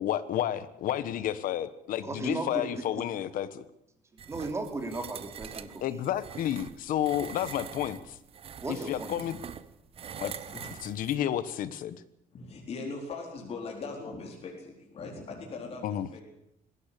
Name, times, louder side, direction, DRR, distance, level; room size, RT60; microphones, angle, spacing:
voice 1, 0.0-3.6 5.8-8.2 8.7-9.4 10.2-10.3 10.8-12.0 15.8-16.1, left 11 dB, 70° left, 15 dB, 1.3 m, -31 dB
voice 2, 2.0-2.7 4.3-5.8 8.6-9.2, right 2 dB, 20° right, 5 dB, 3.1 m, -35 dB
sound 1, 4.2-11.2, right 8 dB, 40° right, 1.0 m, -44 dB
voice 3, 9.9-10.9 12.3-16.2, left 3 dB, 45° left, 0 dB, 4.4 m, -41 dB
20.5 x 16.5 x 8.5 m, 0.81 s
cardioid pair, 150°, 14 cm